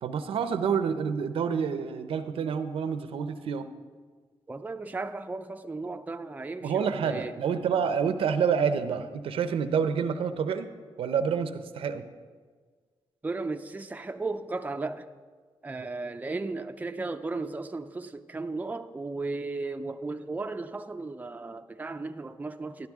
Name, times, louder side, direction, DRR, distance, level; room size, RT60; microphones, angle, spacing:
voice 1, 0.0-3.7 6.6-10.7 11.0-12.1, right 6 dB, 85° right, 0.7 m, -28 dB
voice 2, 4.5-7.4 13.2-15.1 15.6-22.9, right 3 dB, 20° right, 0.5 m, -35 dB
12.0 x 12.0 x 3.6 m
cardioid pair, 90°, 9 cm